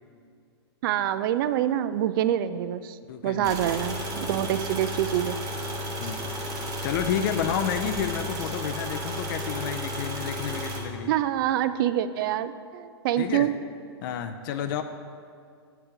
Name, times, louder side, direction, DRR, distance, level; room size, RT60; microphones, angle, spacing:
voice 1, 0.8-3.0 3.2-5.4 11.1-13.5, right 11 dB, 55° right, 13 dB, 0.4 m, -26 dB
voice 2, 3.0-3.7 4.4-4.5 6.0-6.3 6.8-11.1 13.2-13.5 14.0-14.8, left 9 dB, 55° left, 8 dB, 0.5 m, -30 dB
sound 1, 3.4-10.8, equal, 25° right, 1.3 m, -33 dB
8.0 x 4.5 x 5.0 m, 2.2 s
hypercardioid pair, 125°, 14 cm